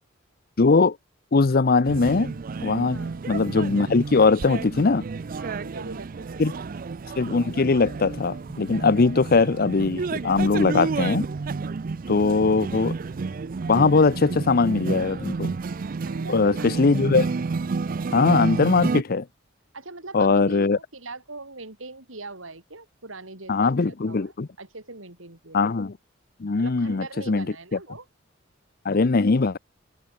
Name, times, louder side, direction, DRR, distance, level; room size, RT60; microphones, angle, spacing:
voice 1, 0.6-1.0 1.3-2.3 2.6-5.0 6.4-6.5 7.2-11.2 12.1-13.0 13.7-15.5 16.3-17.3 18.1-19.3 20.1-20.8 23.5-24.5 25.5-25.9 26.4-27.5 28.8-29.6, left 4 dB, 50° left, 0.6 m, -21 dB
sound 1, 1.8-19.0, right 4 dB, 45° right, 0.4 m, -31 dB
voice 2, 2.9-3.3 5.4-6.7 16.1-16.7 19.7-25.6 26.6-28.1, right 2 dB, 90° right, 6.3 m, -41 dB
head